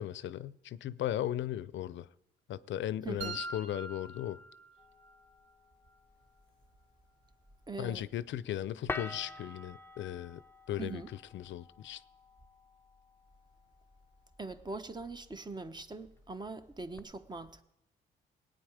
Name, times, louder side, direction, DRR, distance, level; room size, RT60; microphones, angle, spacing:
voice 1, 0.0-2.1 2.5-4.4 7.8-10.4 10.7-11.0 11.3-12.0, left 12 dB, 70° left, 0.6 m, -37 dB
voice 2, 3.0-3.4 7.7-8.0 10.8-11.1 14.4-17.6, right 3 dB, 20° right, 1.0 m, -42 dB
sound 1, 3.2-5.2, right 3 dB, 75° right, 1.1 m, -44 dB
sound 2, 4.8-17.0, left 3 dB, 10° left, 0.6 m, -49 dB
19.0 x 9.1 x 4.9 m
cardioid pair, 90°, 20 cm